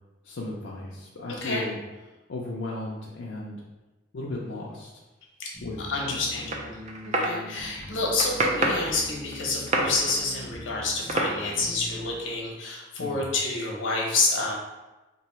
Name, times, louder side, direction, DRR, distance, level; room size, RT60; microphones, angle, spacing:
voice 1, 0.2-1.8 2.3-3.6 4.1-4.9 5.6-6.5 13.0-13.3, left 2 dB, 70° left, -3 dB, 0.5 m, -35 dB
voice 2, 1.3-1.6 5.9-6.7 7.1-14.5, left 3 dB, 90° left, -1 dB, 1.0 m, -28 dB
sound 1, 5.5-12.1, left 1 dB, 15° right, 1.1 m, -43 dB
sound 2, 6.5-7.3 7.8-9.0 9.3-10.3 11.1-11.3, right 2 dB, 40° right, 0.5 m, -27 dB
3.0 x 2.6 x 4.3 m, 1.1 s
head